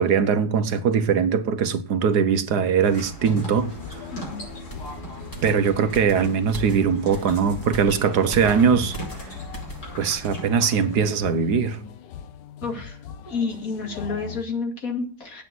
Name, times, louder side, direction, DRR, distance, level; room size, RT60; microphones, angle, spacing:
voice 1, 0.0-3.7 5.4-8.9 10.0-11.8, right 6 dB, 70° right, 1.5 m, -21 dB
sound 1, 2.8-11.1, right 1 dB, 65° left, 6.0 m, -39 dB
sound 2, 3.6-14.4, left 8 dB, 90° left, 1.5 m, -40 dB
voice 2, 4.1-4.4 12.6-13.0 13.3-15.4, left 4 dB, 50° left, 2.8 m, -30 dB
sound 3, 4.7-9.9 10.2-10.4, equal, 10° left, 2.4 m, -39 dB
10.5 x 9.0 x 7.8 m
omnidirectional pair, 1.9 m